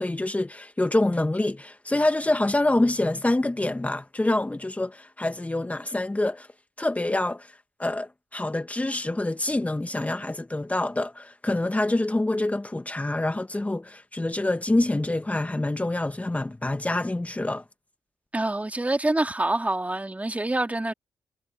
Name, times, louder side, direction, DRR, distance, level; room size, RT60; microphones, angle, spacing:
voice 1, 0.0-6.5 6.8-7.5 7.8-17.6, left 2 dB, 20° left, 1.8 m, -26 dB
voice 2, 18.3-20.9, right 2 dB, 20° right, 2.9 m, -26 dB
supercardioid pair, 45°, 8 cm